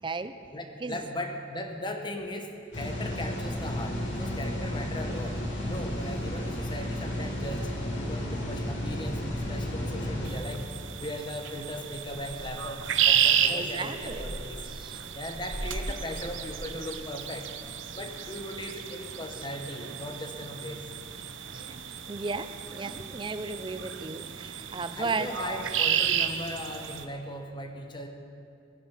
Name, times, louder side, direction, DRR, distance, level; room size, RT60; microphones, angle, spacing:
voice 1, 0.0-0.3 0.8-1.1 13.4-14.3 14.7-15.0 19.3-19.5 21.5-21.7 22.1-25.6, right 3 dB, 25° right, 10 dB, 0.5 m, -35 dB
voice 2, 0.5-10.6 11.0-14.6 14.9-17.5 17.9-20.9 24.9-28.1, left 1 dB, 25° left, 4 dB, 1.1 m, -38 dB
sound 1, 2.7-10.3, left 1 dB, 65° left, 2.5 m, -33 dB
Purr / Meow, 8.9-17.7, equal, 5° left, 2.5 m, -44 dB
sound 2, 10.2-27.0, right 9 dB, 75° right, 0.8 m, -32 dB
21.5 x 7.2 x 5.7 m, 2.6 s
head